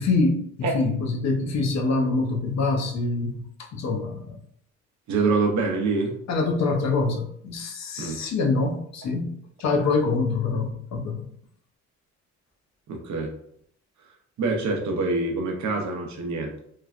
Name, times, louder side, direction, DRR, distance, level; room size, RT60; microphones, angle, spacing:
voice 1, 0.0-3.4 3.7-4.3 6.3-9.3 9.6-11.2, left 3 dB, 60° left, 2 dB, 0.7 m, -25 dB
voice 2, 5.1-6.1 8.0-8.2 12.9-13.3 14.4-16.6, right 3 dB, 70° right, 1 dB, 0.6 m, -25 dB
3.2 x 2.1 x 2.4 m, 0.67 s
cardioid pair, 90°, 30 cm